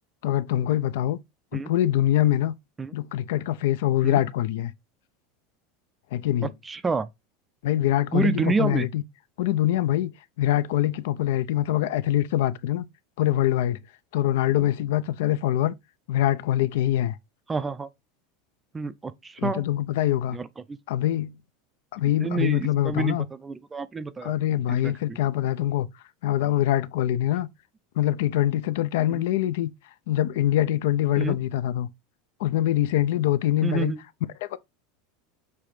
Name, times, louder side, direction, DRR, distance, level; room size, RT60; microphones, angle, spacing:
voice 1, 0.2-1.2 1.5-2.5 2.9-4.7 6.1-6.5 7.6-9.0 9.4-12.9 13.2-13.8 14.1-15.7 16.1-17.2 19.4-20.4 20.9-21.4 21.9-23.3 24.2-25.9 26.2-27.5 28.0-29.7 30.1-31.9 32.4-33.9 34.4-34.6, left 13 dB, 70° left, 0.5 m, -24 dB
voice 2, 6.6-7.1 8.1-8.9 17.5-17.9 18.7-19.6 20.3-20.8 22.2-24.3 24.7-25.2 29.1-29.2 31.2-31.3 33.6-34.0, right 4 dB, 10° right, 0.4 m, -28 dB
6.9 x 3.3 x 4.9 m
supercardioid pair, 170°, 0 cm